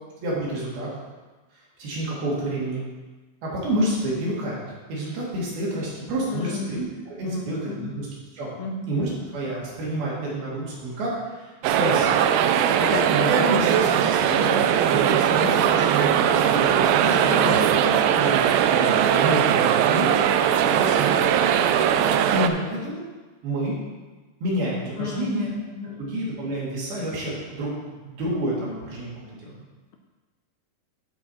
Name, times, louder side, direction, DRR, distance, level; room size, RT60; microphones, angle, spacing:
voice 1, 0.2-0.9 1.8-2.8 3.4-4.6 4.9-8.1 8.3-8.5 8.9-12.1 12.8-17.8 18.2-21.3 22.0-23.0 23.4-23.7 24.4-25.5 26.0-29.5, right 1 dB, 70° right, -6 dB, 3.9 m, -29 dB
voice 2, 6.3-6.8 7.2-8.0 8.6-8.9 17.3-18.0 25.0-26.0, left 5 dB, 80° left, 3 dB, 2.3 m, -33 dB
sound 1, 11.6-22.5, right 9 dB, 85° right, 2.0 m, -20 dB
13.0 x 4.8 x 4.2 m, 1.2 s
omnidirectional pair, 4.6 m